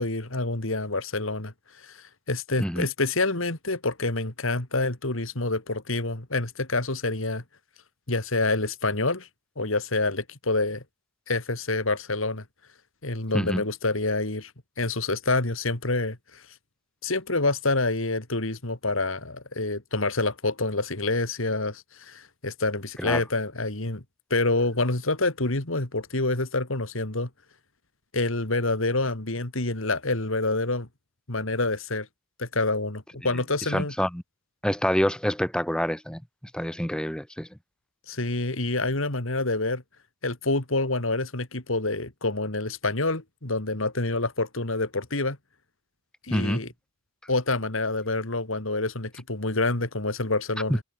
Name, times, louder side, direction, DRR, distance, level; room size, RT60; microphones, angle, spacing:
voice 1, 0.0-7.4 8.1-9.3 9.6-10.8 11.3-12.4 13.0-14.5 14.8-16.4 17.0-24.0 24.3-27.3 28.1-30.9 31.3-32.1 32.4-33.9 38.1-39.8 40.2-45.4 46.2-46.7 47.3-50.8, left 2 dB, 70° left, 2.9 m, -27 dB
voice 2, 33.7-34.2 34.6-36.2 36.5-37.5 46.3-46.6, equal, 5° left, 2.4 m, -26 dB
head